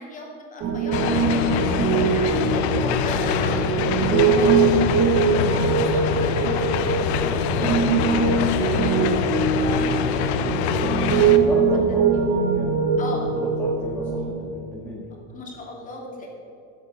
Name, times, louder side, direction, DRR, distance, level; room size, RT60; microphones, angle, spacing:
voice 1, 0.0-2.5 3.0-3.7 4.3-4.7 5.7-9.1 9.5-10.5 10.9-11.5 13.0-13.2 15.3-16.3, left 2 dB, 25° left, -1 dB, 2.5 m, -37 dB
Piano, 0.6-14.3, right 5 dB, 45° right, 1.4 m, -22 dB
sound 1, 0.9-11.4, left 8 dB, 80° left, 0.9 m, -25 dB
voice 2, 2.3-3.1 3.9-4.5 11.0-13.0 13.3-15.1, left 1 dB, 5° left, -6 dB, 1.6 m, -33 dB
11.0 x 8.0 x 7.0 m, 2.8 s
supercardioid pair, 145°, 32 cm